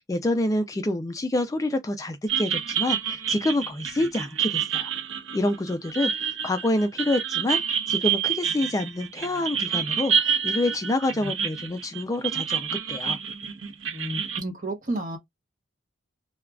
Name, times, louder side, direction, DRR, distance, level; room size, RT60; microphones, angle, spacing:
voice 1, 0.0-4.9 5.3-13.2, left 1 dB, 20° left, 0.3 m, -27 dB
sound 1, 2.3-14.4, right 7 dB, 85° right, 0.7 m, -28 dB
voice 2, 13.9-15.2, right 1 dB, 45° right, 1.2 m, -31 dB
3.4 x 2.3 x 2.2 m
head